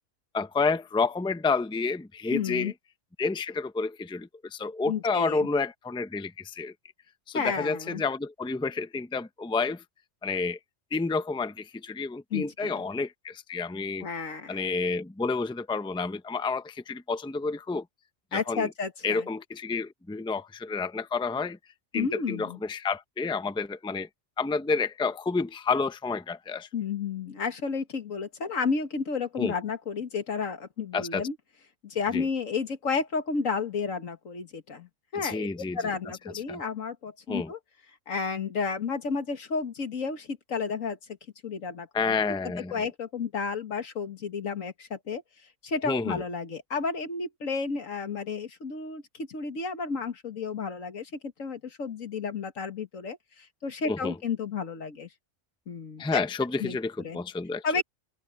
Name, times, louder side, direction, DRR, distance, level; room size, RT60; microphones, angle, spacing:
voice 1, 0.3-2.7 3.2-6.7 7.3-9.8 10.2-10.6 10.9-14.1 14.5-17.8 18.3-18.7 19.0-21.6 21.9-24.1 24.4-26.7 29.4-29.5 30.9-31.3 32.1-32.3 35.1-35.8 36.5-36.6 37.3-37.5 41.9-42.8 45.9-46.2 53.9-54.1 56.0-57.8, left 4 dB, 5° left, 0.6 m, -30 dB
voice 2, 2.3-2.7 4.9-5.5 7.3-8.0 12.3-12.7 14.0-14.6 18.3-19.3 21.9-22.6 26.7-31.4 31.8-35.5 35.7-37.6 38.1-41.0 41.4-45.2 45.6-51.1 51.4-55.1 55.7-56.2 56.6-57.2 57.6-57.8, left 5 dB, 85° left, 2.1 m, -32 dB
open air
omnidirectional pair, 1.3 m